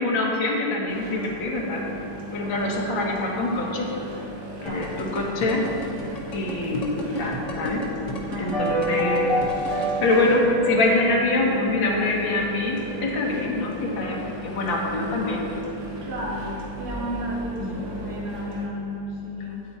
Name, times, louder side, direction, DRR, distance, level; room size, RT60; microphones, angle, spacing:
voice 1, 0.0-1.9 2.3-4.1 4.6-5.7 6.3-7.8 8.4-9.3 10.0-15.4 17.6-17.8, left 2 dB, 65° left, -2 dB, 2.0 m, -25 dB
sound 1, 0.9-18.7, equal, 40° right, 1.5 m, -37 dB
voice 2, 2.4-2.8 4.6-5.0 8.2-8.7 16.0-19.6, equal, 70° right, -7 dB, 3.0 m, -33 dB
sound 2, 4.7-9.9, left 2 dB, 50° left, 1.0 m, -34 dB
sound 3, 8.5-12.8 13.1-13.2, equal, 20° right, 1.4 m, -27 dB
8.6 x 8.6 x 4.2 m, 2.8 s
omnidirectional pair, 2.3 m